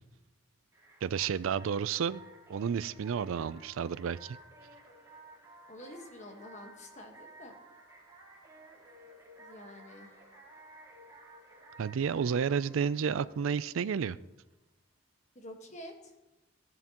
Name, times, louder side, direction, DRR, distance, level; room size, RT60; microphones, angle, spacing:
sound 1, 0.7-14.2, right 2 dB, 15° right, 2.3 m, -55 dB
voice 1, 1.0-2.2 2.5-4.4 11.8-14.2, right 7 dB, 75° right, 17 dB, 0.4 m, -31 dB
voice 2, 5.7-7.6 9.4-10.2 15.3-16.1, left 1 dB, 35° left, 3 dB, 1.4 m, -48 dB
16.0 x 11.0 x 3.0 m, 1.0 s
head